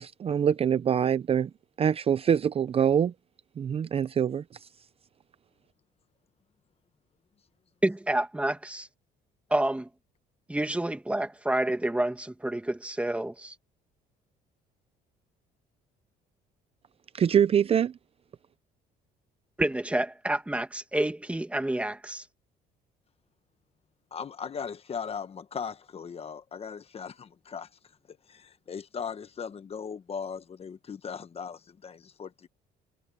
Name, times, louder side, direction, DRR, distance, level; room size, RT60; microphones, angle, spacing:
voice 1, 0.0-1.5 1.8-3.1 3.6-4.4 17.1-17.9, right 8 dB, 35° right, 0.5 m, -24 dB
voice 2, 7.8-8.9 9.5-9.9 10.5-13.5 19.6-22.2, right 1 dB, 5° right, 2.0 m, -28 dB
voice 3, 24.1-27.7 28.1-32.5, left 6 dB, 35° left, 1.3 m, -38 dB
cardioid pair, 110°, 17 cm